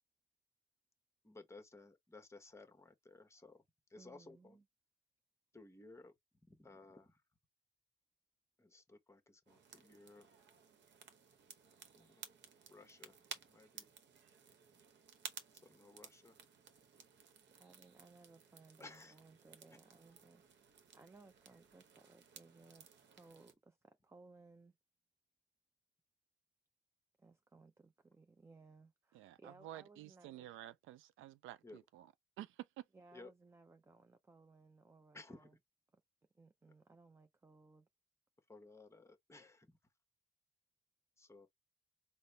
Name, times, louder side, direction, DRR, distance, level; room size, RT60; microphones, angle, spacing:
voice 1, 1.2-3.6 3.9-4.6 5.5-6.1 6.5-7.2 8.6-10.3 11.9-12.2 12.7-13.2 13.5-13.9 15.5-16.4 18.8-19.1 31.6-31.8 33.1-33.3 35.1-35.6 38.5-39.8 41.2-41.5, left 2 dB, 15° left, 1.0 m, -57 dB
voice 2, 4.0-4.6 17.6-24.8 27.2-30.5 32.9-35.6 35.9-36.0 36.3-37.9, right 3 dB, 15° right, 0.4 m, -63 dB
sound 1, 9.5-23.5, right 7 dB, 65° right, 0.9 m, -57 dB
voice 3, 29.1-32.1 32.4-32.8, right 13 dB, 80° right, 0.4 m, -51 dB
4.0 x 2.1 x 3.3 m
cardioid pair, 90°, 20 cm